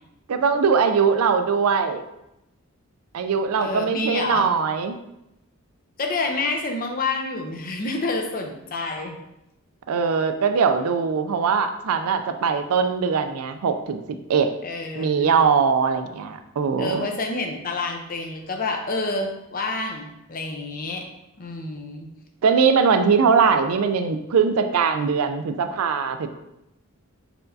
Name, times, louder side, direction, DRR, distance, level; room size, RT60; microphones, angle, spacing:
voice 1, 0.3-2.0 3.1-5.0 9.9-14.5 15.0-17.1 22.4-26.3, right 6 dB, 90° right, 8 dB, 0.4 m, -21 dB
voice 2, 3.6-4.5 6.0-9.2 14.6-15.4 16.8-21.1 21.4-22.1, left 3 dB, 40° left, 3 dB, 0.6 m, -28 dB
4.5 x 4.3 x 2.6 m, 0.87 s
head